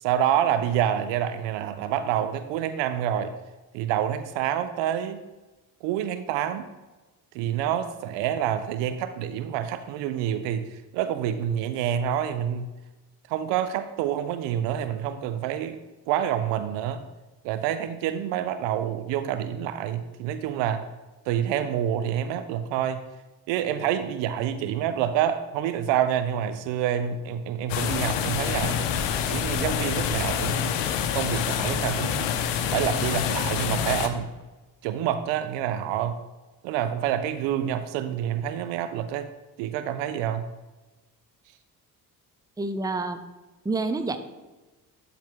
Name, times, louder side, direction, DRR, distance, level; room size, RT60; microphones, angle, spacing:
voice 1, 0.0-3.3 3.7-5.2 5.8-6.7 7.3-12.7 13.3-15.8 16.1-17.0 17.4-20.9 21.3-23.0 23.5-28.8 29.3-30.7 31.1-32.3 32.7-34.3 34.8-36.2 36.6-39.3 39.6-40.5, right 10 dB, 65° right, 11 dB, 0.6 m, -27 dB
sound 1, 27.7-34.1, left 8 dB, 60° left, 0.8 m, -27 dB
voice 2, 42.6-43.2 43.6-44.2, right 3 dB, 10° right, 9 dB, 0.6 m, -27 dB
11.5 x 4.1 x 3.7 m, 1.1 s
figure-of-eight pair, 40°, 48 cm